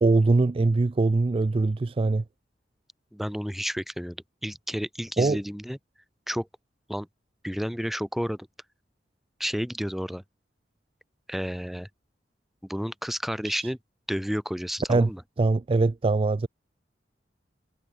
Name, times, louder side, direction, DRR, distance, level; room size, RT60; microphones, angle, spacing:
voice 1, 0.0-2.2 5.2-5.4 13.4-13.7 14.9-15.1 15.4-16.5, right 3 dB, 30° right, 0.4 m, -22 dB
voice 2, 3.1-4.2 4.4-5.8 6.3-6.5 6.9-7.1 7.4-8.4 9.4-10.2 11.3-11.9 12.6-13.8 14.1-15.2, equal, ahead, 2.4 m, -31 dB
head